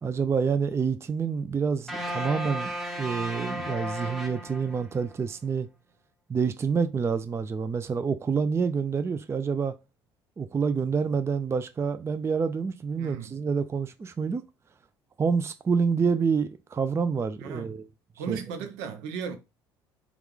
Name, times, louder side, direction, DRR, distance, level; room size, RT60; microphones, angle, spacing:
voice 1, 0.0-5.7 6.3-9.7 10.4-14.4 15.2-17.8 18.3-18.4, right 5 dB, 20° right, 0.4 m, -27 dB
sound 1, 1.9-5.1, equal, ahead, 1.0 m, -34 dB
voice 2, 13.0-13.3 17.4-17.7 18.2-19.4, right 6 dB, 75° right, 0.7 m, -36 dB
3.0 x 2.4 x 3.7 m
hypercardioid pair, 65°, 12 cm